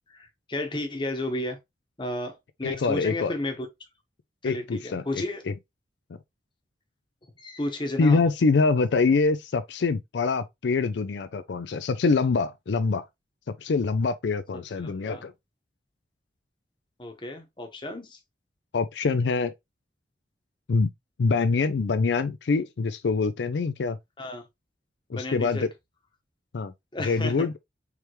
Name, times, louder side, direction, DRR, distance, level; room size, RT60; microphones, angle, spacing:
voice 1, 0.1-1.6 2.0-3.7 4.4-5.4 7.4-8.2 14.5-14.6 15.1-15.2 17.0-18.2 24.2-24.4 25.1-25.7 26.9-27.5, left 1 dB, 25° left, 1.0 m, -32 dB
voice 2, 2.6-3.3 4.4-5.5 8.0-13.0 13.6-15.3 18.7-19.5 20.7-20.9 21.2-24.0 25.1-25.7 26.5-26.7 27.0-27.5, left 4 dB, 80° left, 0.4 m, -25 dB
4.8 x 3.4 x 3.0 m
head